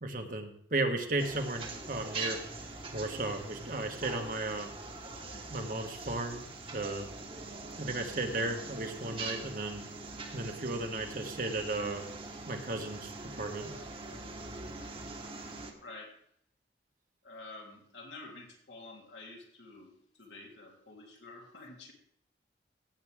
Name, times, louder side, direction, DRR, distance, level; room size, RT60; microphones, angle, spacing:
voice 1, 0.0-2.4 2.9-4.7 5.3-6.4 6.7-7.1 7.8-9.8 10.3-12.0 12.5-13.7, right 2 dB, 50° right, 4 dB, 1.4 m, -35 dB
sound 1, 1.2-15.7, right 3 dB, 30° right, 1.4 m, -43 dB
voice 2, 15.8-16.2 17.2-19.9 20.2-21.9, left 2 dB, 85° left, -2 dB, 3.5 m, -49 dB
16.5 x 8.0 x 3.6 m, 0.67 s
head